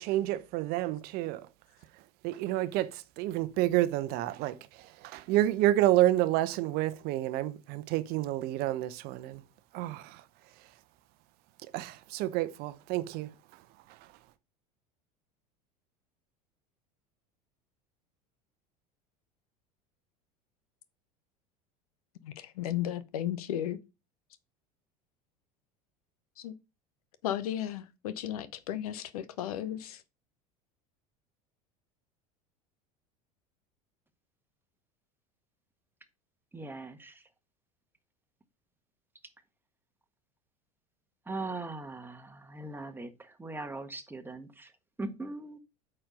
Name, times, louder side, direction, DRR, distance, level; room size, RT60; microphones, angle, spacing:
voice 1, 0.0-1.5 2.2-9.4 9.7-10.2 11.7-13.6 13.9-14.0, right 15 dB, 55° right, 0.9 m, -29 dB
voice 2, 22.2-23.8 26.4-26.5 27.2-30.0, left 11 dB, 70° left, 0.9 m, -34 dB
voice 3, 36.5-37.2 41.3-44.7 45.0-45.6, right 2 dB, 10° right, 1.5 m, -40 dB
8.7 x 4.5 x 5.2 m
hypercardioid pair, 75°, 20 cm